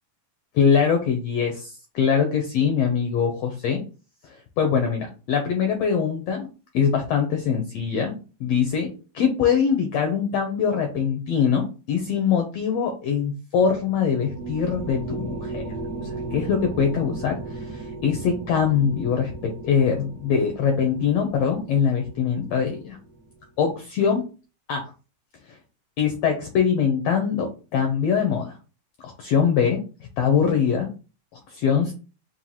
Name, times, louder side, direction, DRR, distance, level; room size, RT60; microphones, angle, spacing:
voice 1, 0.5-3.8 4.2-15.6 16.3-23.0 23.6-24.2 24.7-24.8 26.0-28.6 29.2-29.8 30.2-30.9 31.5-31.9, left 7 dB, 80° left, 4 dB, 1.5 m, -23 dB
sound 1, 13.6-23.3, right 2 dB, 80° right, 0.9 m, -36 dB
5.5 x 2.6 x 2.7 m, 0.34 s
omnidirectional pair, 3.6 m